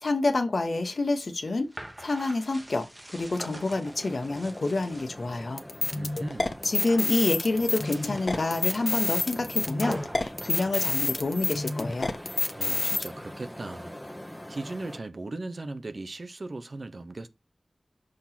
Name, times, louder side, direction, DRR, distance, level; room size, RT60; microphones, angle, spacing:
voice 1, 0.0-1.7 2.0-5.6 6.6-12.1, left 2 dB, 75° left, 1.1 m, -28 dB
sound 1, 0.6-5.5 5.9-6.4 6.7-7.2 7.7-11.6, right 1 dB, 25° right, 1.1 m, -44 dB
sound 2, 3.8-15.0, equal, 10° left, 1.0 m, -44 dB
sound 3, 5.6-13.1, left 3 dB, 55° left, 0.9 m, -28 dB
voice 2, 5.9-6.6 12.5-13.9 14.5-17.3, right 2 dB, 65° right, 0.8 m, -38 dB
6.4 x 2.9 x 5.7 m
wide cardioid pair, 45°, 0 cm